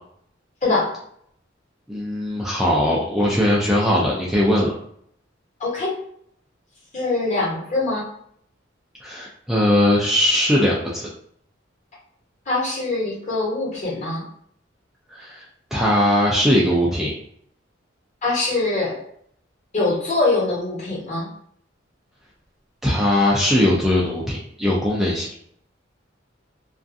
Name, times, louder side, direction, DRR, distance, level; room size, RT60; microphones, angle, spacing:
voice 1, 1.9-4.7 9.0-11.1 15.1-15.4 15.7-17.1 22.8-25.3, left 1 dB, ahead, -5 dB, 0.3 m, -20 dB
voice 2, 5.6-6.0 6.9-8.1 12.5-14.2 18.2-19.0 19.7-21.3, left 2 dB, 40° left, -5 dB, 1.1 m, -23 dB
2.4 x 2.3 x 2.5 m, 0.66 s
head